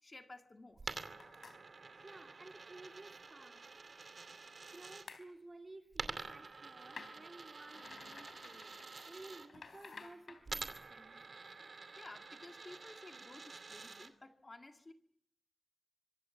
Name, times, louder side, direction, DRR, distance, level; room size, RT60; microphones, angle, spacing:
voice 1, 0.0-1.0 1.9-2.1 8.9-9.2 11.6-14.9, left 2 dB, 35° left, 5 dB, 2.0 m, -55 dB
Coin (dropping), 0.8-5.1 5.9-9.5 10.5-14.1, right 4 dB, 65° right, 2.5 m, -48 dB
sound 1, 1.2-1.6 5.1-5.3 6.9-10.9, left 4 dB, 80° left, 3.5 m, -54 dB
voice 2, 2.0-3.6 4.7-8.8 9.0-11.2, right 2 dB, 35° right, 4 dB, 3.1 m, -55 dB
25.5 x 23.5 x 7.1 m, 0.70 s
wide cardioid pair, 110°, 0 cm